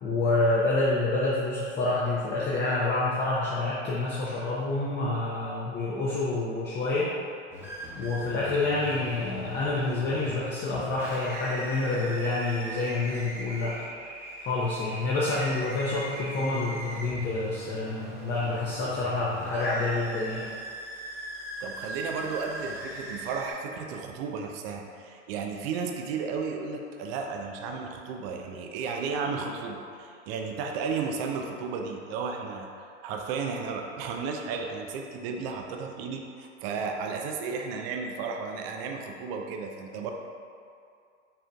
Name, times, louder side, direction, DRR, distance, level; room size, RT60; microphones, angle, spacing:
voice 1, 0.0-7.1 7.9-13.7 14.4-20.5, left 2 dB, 30° left, -6 dB, 0.7 m, -28 dB
sound 1, 7.5-23.5, equal, 5° right, 0.9 m, -40 dB
voice 2, 21.6-40.1, right 5 dB, 55° right, 2 dB, 0.6 m, -34 dB
5.6 x 3.7 x 2.3 m, 2.4 s
hypercardioid pair, 100°, 36 cm